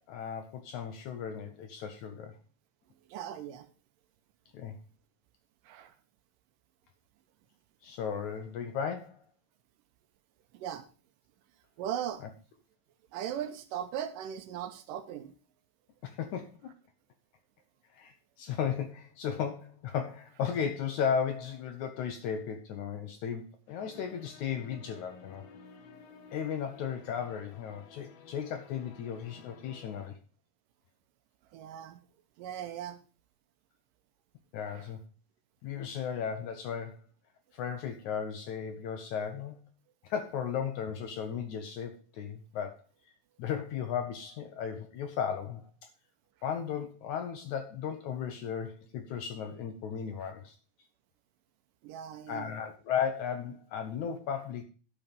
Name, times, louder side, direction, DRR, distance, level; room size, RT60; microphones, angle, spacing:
voice 1, 0.1-2.3 4.5-4.8 7.8-9.2 16.0-16.7 17.9-25.4 26.3-30.1 34.5-35.0 35.6-37.0 37.5-39.6 40.0-42.8 43.4-45.7 46.4-50.6 52.3-54.6, left 7 dB, 70° left, 6 dB, 1.9 m, -35 dB
voice 2, 3.1-3.7 5.6-5.9 10.5-10.9 11.8-12.2 13.1-15.3 31.5-32.0 32.4-33.0 34.7-34.9 50.2-50.3 51.8-52.5, right 10 dB, 75° right, 9 dB, 2.3 m, -38 dB
sound 1, 23.7-30.1, left 5 dB, 85° left, 3.0 m, -53 dB
10.5 x 5.7 x 5.2 m, 0.36 s
omnidirectional pair, 4.2 m